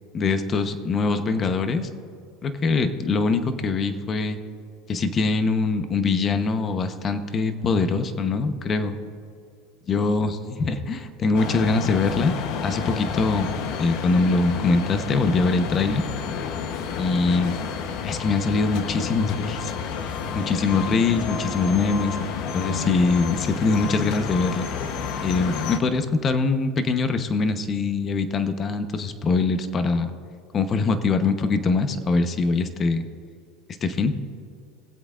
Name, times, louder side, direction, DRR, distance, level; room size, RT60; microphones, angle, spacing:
voice 1, 0.1-1.9 2.4-4.4 4.9-8.9 9.9-12.3 12.6-13.5 13.8-16.0 17.0-17.6 18.0-19.9 20.3-22.2 22.5-24.7 25.2-30.1 30.5-33.0 33.8-34.1, left 4 dB, 30° left, 9 dB, 0.9 m, -23 dB
sound 1, 11.3-25.8, left 6 dB, 60° left, 0.9 m, -30 dB
21.0 x 7.9 x 2.5 m, 2.3 s
supercardioid pair, 115°, 0 cm